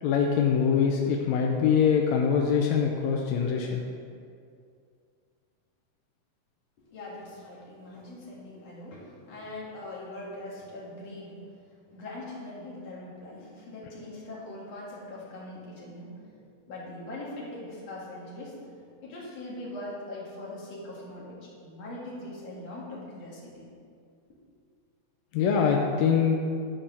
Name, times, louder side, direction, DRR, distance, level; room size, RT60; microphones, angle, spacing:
voice 1, 0.0-3.8 25.3-26.4, left 7 dB, 75° left, 1 dB, 1.7 m, -23 dB
voice 2, 6.9-11.4 11.9-23.7, left 1 dB, 55° left, -5 dB, 2.9 m, -41 dB
11.5 x 4.9 x 6.0 m, 2.3 s
omnidirectional pair, 3.8 m